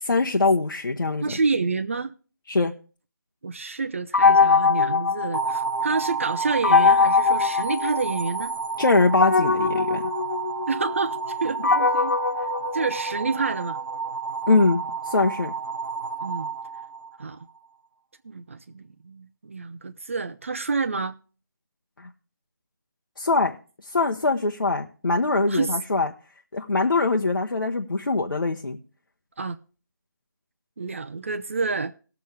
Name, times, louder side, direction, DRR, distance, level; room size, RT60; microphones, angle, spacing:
voice 1, 0.0-1.4 2.5-2.7 8.8-10.1 14.5-15.5 22.0-22.1 23.2-23.6 23.9-26.1 26.5-28.8, left 3 dB, 80° left, 1.2 m, -22 dB
voice 2, 1.2-2.1 3.4-8.5 10.7-12.2 12.7-13.8 16.2-16.5 17.2-17.4 18.2-21.1 25.5-25.8 29.4-29.6 30.8-31.9, right 4 dB, 40° right, 0.6 m, -28 dB
sound 1, 4.1-5.9 6.6-8.4 9.1-13.4, left 5 dB, 60° left, 0.6 m, -21 dB
sound 2, 5.3-17.5, right 5 dB, 90° right, 0.8 m, -31 dB
19.5 x 7.1 x 3.4 m
figure-of-eight pair, 170°, 11 cm